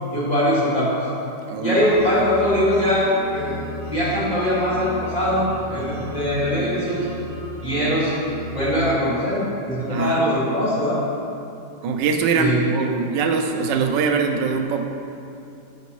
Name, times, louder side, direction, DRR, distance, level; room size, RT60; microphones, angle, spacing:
voice 1, 0.1-1.0 1.6-3.5 3.9-7.1 7.6-8.2 8.5-11.0 12.3-12.6, equal, 25° left, -9 dB, 1.7 m, -21 dB
voice 2, 1.5-1.9 2.1-2.2 9.9-10.3 11.8-14.9, right 4 dB, 90° right, 5 dB, 1.2 m, -22 dB
sound 1, 1.8-8.8, equal, 50° right, 1.0 m, -34 dB
8.2 x 6.0 x 3.0 m, 2.7 s
omnidirectional pair, 1.9 m